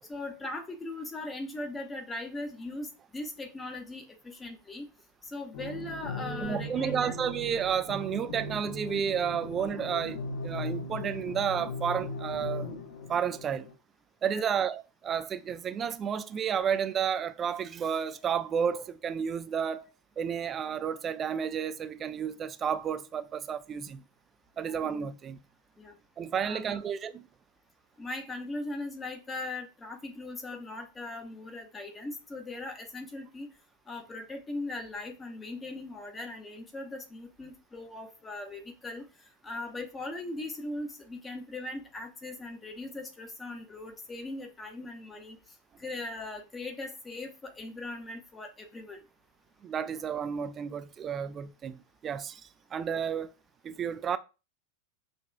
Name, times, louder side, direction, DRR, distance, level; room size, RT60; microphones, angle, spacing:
voice 1, 0.1-4.9 5.2-7.1 14.2-14.4 24.6-24.8 25.8-25.9 26.4-26.8 28.0-33.5 33.9-39.0 39.4-45.4 45.8-49.0, left 2 dB, 15° left, 0.8 m, -39 dB
sound 1, 5.5-13.7, left 2 dB, 55° left, 1.1 m, -38 dB
voice 2, 6.4-12.7 13.1-13.7 14.2-19.9 20.2-24.0 24.6-25.4 26.2-27.2 49.6-52.4 52.7-53.3 53.6-54.2, right 7 dB, 25° right, 0.3 m, -31 dB
6.4 x 2.3 x 2.2 m
figure-of-eight pair, 90°, 0 cm